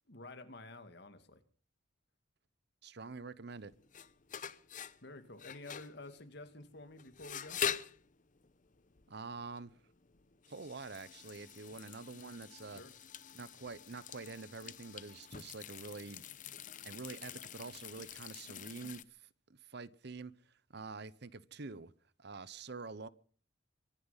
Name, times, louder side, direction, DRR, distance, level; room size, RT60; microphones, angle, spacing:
voice 1, 0.1-1.4 5.0-7.6 12.7-12.9, left 2 dB, 55° left, 2.2 m, -50 dB
voice 2, 2.8-3.7 9.1-9.8 10.5-12.8 13.3-16.2 16.8-21.9 22.2-23.1, right 4 dB, 60° right, 0.9 m, -47 dB
sound 1, 3.6-19.0, left 8 dB, 40° left, 0.8 m, -45 dB
24.5 x 10.0 x 5.8 m
head